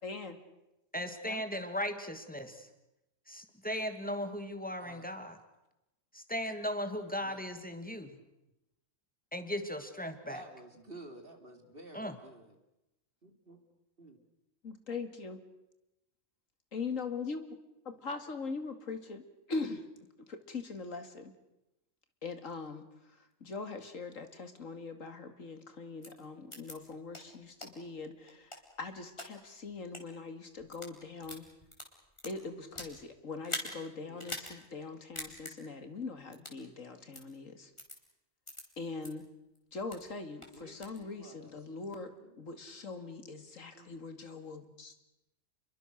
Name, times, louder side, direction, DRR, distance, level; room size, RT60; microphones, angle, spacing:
voice 1, 0.0-0.4 1.2-1.4 14.6-15.4 16.7-17.4 17.8-19.8 20.3-21.3 22.2-31.5 32.2-37.7 38.8-39.3 39.7-42.1 42.4-44.9, left 4 dB, 80° left, 8 dB, 2.6 m, -42 dB
voice 2, 0.9-2.7 3.3-5.4 6.1-8.1 9.3-10.4 11.9-12.1, equal, 5° left, 8 dB, 2.4 m, -37 dB
voice 3, 4.8-5.1 7.2-7.6 10.3-12.6 13.2-13.6 14.0-14.2 34.0-34.3 40.5-42.4 43.7-43.9, right 2 dB, 45° right, 5 dB, 3.4 m, -52 dB
sound 1, 26.0-26.1 26.5-26.7 27.1-27.2 27.6-27.7 28.3-29.3 29.8-30.0 30.6-30.9 31.2-33.0 33.4-33.7 34.2-34.5 34.8-34.9 35.2-35.5 36.3-36.6 37.1-37.2 37.8-38.0 38.5-38.6 39.0-39.1 39.5-40.1 40.4-41.0, left 1 dB, 20° left, 4.1 m, -42 dB
30.0 x 22.5 x 6.5 m, 0.93 s
omnidirectional pair, 1.3 m